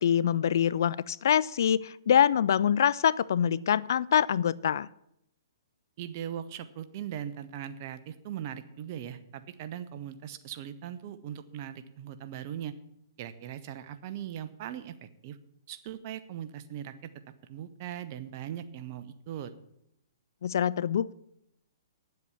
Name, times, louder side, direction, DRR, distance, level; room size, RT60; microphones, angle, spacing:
voice 1, 0.0-4.9 20.4-21.1, left 9 dB, 65° left, 21 dB, 0.4 m, -25 dB
voice 2, 6.0-12.7 13.2-15.4 15.7-17.1 17.5-19.5, right 10 dB, 45° right, 11 dB, 0.9 m, -39 dB
9.9 x 7.7 x 7.3 m, 0.79 s
hypercardioid pair, 125°, 2 cm